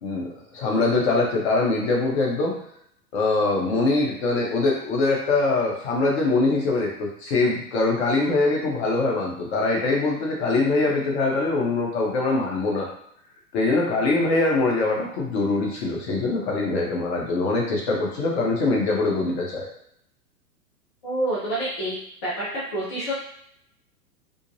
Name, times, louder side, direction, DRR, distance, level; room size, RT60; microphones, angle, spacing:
voice 1, 0.0-2.6 3.1-12.9 13.5-19.7, left 3 dB, 45° left, -1 dB, 1.0 m, -23 dB
voice 2, 21.0-22.5 22.7-23.1, right 1 dB, 15° left, -8 dB, 0.3 m, -28 dB
3.7 x 2.1 x 2.6 m, 0.72 s
figure-of-eight pair, 105°, 46 cm